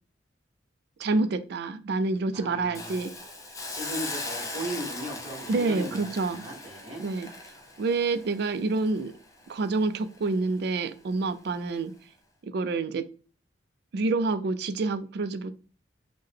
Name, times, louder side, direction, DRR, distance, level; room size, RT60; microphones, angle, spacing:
voice 1, 1.0-3.1 5.5-6.5 7.0-7.3 7.8-9.1 9.5-11.9 12.4-13.1 13.9-15.5, right 3 dB, 60° right, 0.3 m, -27 dB
voice 2, 2.3-3.0 3.7-7.0, right 1 dB, 30° right, 1.1 m, -37 dB
Hiss, 2.7-9.8 10.2-10.3, left 2 dB, 15° left, 0.5 m, -39 dB
3.6 x 2.1 x 3.2 m
head